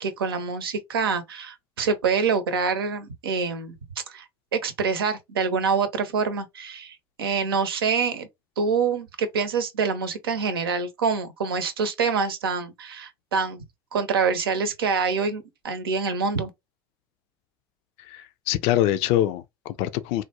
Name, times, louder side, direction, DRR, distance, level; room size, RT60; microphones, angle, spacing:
voice 1, 0.0-3.7 4.1-4.2 4.5-8.3 8.6-13.6 13.9-16.5, right 5 dB, 85° right, 0.7 m, -26 dB
voice 2, 18.1-20.2, left 13 dB, 55° left, 0.4 m, -24 dB
3.6 x 2.2 x 2.8 m
hypercardioid pair, 80°, 12 cm